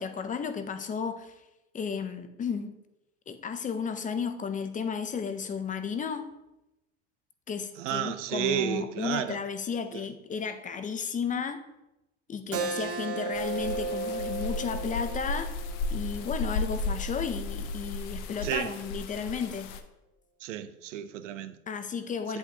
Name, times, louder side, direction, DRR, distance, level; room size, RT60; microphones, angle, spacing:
voice 1, 0.0-1.4 1.7-2.8 3.3-6.3 7.5-11.6 12.3-15.5 15.9-19.7 21.7-22.4, left 6 dB, 20° left, 0.6 m, -33 dB
voice 2, 7.8-9.4 9.9-10.0 18.4-18.7 20.4-21.5, right 11 dB, 85° right, 0.6 m, -32 dB
Keyboard (musical), 12.5-17.7, right 3 dB, 40° right, 0.8 m, -36 dB
sound 1, 13.3-19.8, left 3 dB, 60° left, 0.8 m, -34 dB
8.5 x 7.9 x 2.8 m
hypercardioid pair, 100°, 36 cm